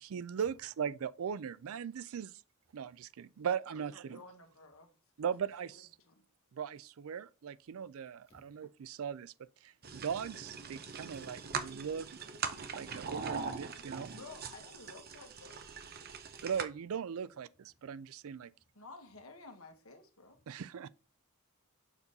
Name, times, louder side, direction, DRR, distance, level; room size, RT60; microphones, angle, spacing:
voice 1, 0.0-2.3 2.7-4.2 5.2-5.9 6.5-12.1 12.8-14.1 16.4-18.5 20.5-20.9, right 7 dB, 65° right, 0.4 m, -39 dB
voice 2, 4.1-4.9 6.1-6.2 14.2-15.6 18.7-20.4, left 3 dB, 70° left, 1.6 m, -53 dB
sound 1, 9.8-16.6, right 5 dB, 45° right, 0.8 m, -42 dB
voice 3, 16.1-16.4 17.2-17.3 17.8-17.9, left 1 dB, 30° left, 3.6 m, -66 dB
7.2 x 5.4 x 4.1 m
head